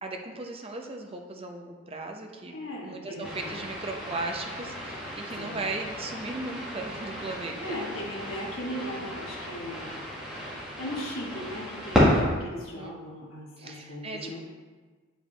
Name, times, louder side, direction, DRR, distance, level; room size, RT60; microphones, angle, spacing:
voice 1, 0.0-7.8 12.7-12.9 13.6-14.4, right 3 dB, 25° right, 3 dB, 0.6 m, -37 dB
voice 2, 2.5-3.6 5.4-5.6 7.6-10.0 10.8-14.4, equal, 65° left, -3 dB, 1.4 m, -38 dB
sound 1, 3.2-12.2, equal, 5° right, 1.6 m, -31 dB
8.0 x 5.0 x 3.3 m, 1.4 s
head